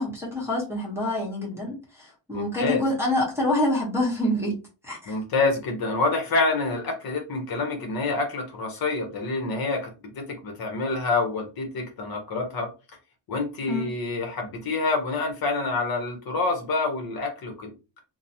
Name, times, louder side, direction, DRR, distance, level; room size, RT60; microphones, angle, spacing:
voice 1, 0.0-4.6 4.8-5.2 13.7-13.8, left 1 dB, 5° right, 0.9 m, -26 dB
voice 2, 2.3-2.8 5.1-12.7 13.3-17.7, left 3 dB, 50° left, 0.8 m, -27 dB
2.9 x 2.0 x 2.6 m
cardioid pair, 170°, 45 cm